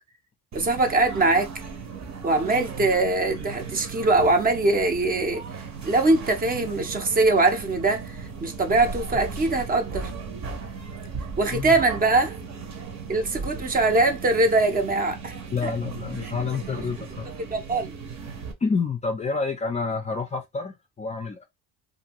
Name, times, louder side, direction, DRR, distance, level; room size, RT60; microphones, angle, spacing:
voice 1, 0.5-1.5 2.2-5.4 5.8-10.1 11.4-12.4 13.1-15.3 16.7-16.8 17.5-17.9, right 2 dB, 25° right, 0.6 m, -22 dB
sound 1, 0.5-18.5, right 5 dB, 50° right, 1.0 m, -37 dB
voice 2, 15.5-17.3 18.6-21.4, left 4 dB, 20° left, 0.4 m, -28 dB
2.6 x 2.6 x 2.9 m
cardioid pair, 125°, 35 cm